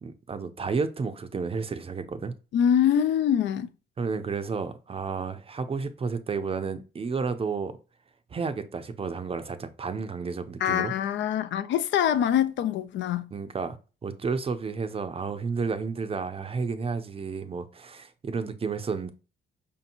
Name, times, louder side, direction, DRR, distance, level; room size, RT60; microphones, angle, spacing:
voice 1, 0.0-2.3 4.0-7.7 8.3-10.9 13.3-13.8 14.0-19.1, right 5 dB, 30° right, 0.5 m, -31 dB
voice 2, 2.5-3.7 10.6-13.3, left 9 dB, 65° left, 0.4 m, -24 dB
5.0 x 2.8 x 2.6 m
cardioid pair, 90°, 20 cm